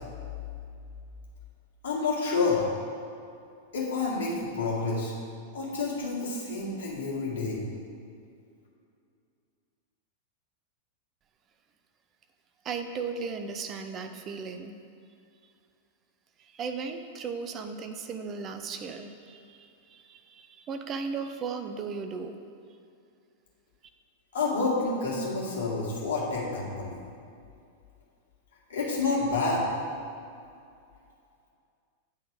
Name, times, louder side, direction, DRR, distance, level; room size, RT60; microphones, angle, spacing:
voice 1, 1.8-2.6 3.7-5.1 5.5-7.6 24.3-27.0 28.7-29.6, left 3 dB, 60° left, -5 dB, 2.0 m, -29 dB
voice 2, 12.6-14.7 16.4-22.4, right 5 dB, 30° right, 7 dB, 0.5 m, -36 dB
8.3 x 3.9 x 6.5 m, 2.4 s
figure-of-eight pair, 95°, 0 cm